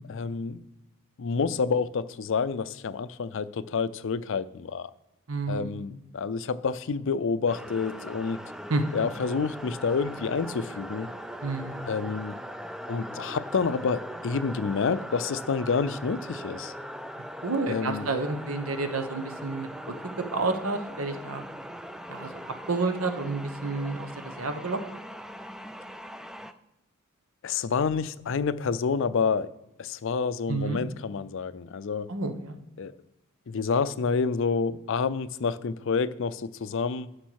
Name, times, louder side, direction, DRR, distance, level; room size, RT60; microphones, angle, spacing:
voice 1, 0.1-0.6 1.2-4.9 5.5-8.4 8.9-11.1 11.9-12.4 12.9-16.7 17.7-18.1 27.4-29.5 29.8-32.1 32.8-32.9 33.5-37.1, left 5 dB, 60° left, 0.4 m, -28 dB
voice 2, 5.3-5.8 8.7-8.8 11.4-11.9 17.4-21.4 22.1-22.4 22.7-24.8 30.5-30.8 32.1-32.6, right 3 dB, 80° right, 1.1 m, -30 dB
sound 1, 7.5-26.5, equal, ahead, 0.3 m, -40 dB
11.5 x 6.5 x 4.7 m
head